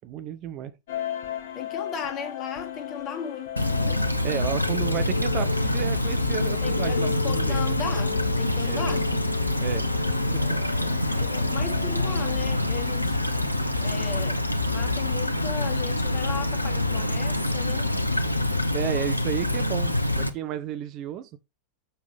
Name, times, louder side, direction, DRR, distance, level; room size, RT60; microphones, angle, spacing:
voice 1, 0.0-0.7 4.2-7.6 8.7-8.9 9.6-9.9 10.3-10.4 18.7-21.3, right 10 dB, 35° right, 0.9 m, -32 dB
sound 1, 0.9-15.0, left 7 dB, 55° left, 1.4 m, -36 dB
voice 2, 1.5-4.1 6.6-9.2 11.1-13.2 13.8-18.0, left 7 dB, 30° left, 2.0 m, -36 dB
Stream / Trickle dribble, 3.6-20.3, left 1 dB, 85° left, 0.8 m, -26 dB
7.0 x 6.9 x 3.5 m
figure-of-eight pair, 90°, 0 cm